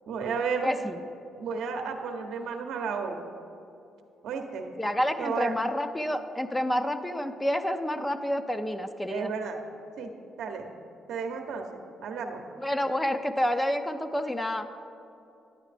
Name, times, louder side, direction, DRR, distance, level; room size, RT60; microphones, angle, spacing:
voice 1, 0.1-0.7 1.4-3.2 4.2-4.7 5.2-5.5 9.1-9.6 10.0-10.1 10.4-10.7 11.1-11.7 12.0-12.4, right 5 dB, 80° right, 4 dB, 0.7 m, -32 dB
voice 2, 0.6-1.0 4.8-9.3 12.6-14.6, equal, 10° left, 8 dB, 0.4 m, -29 dB
10.0 x 9.1 x 3.3 m, 2.7 s
cardioid pair, 95°, 0 cm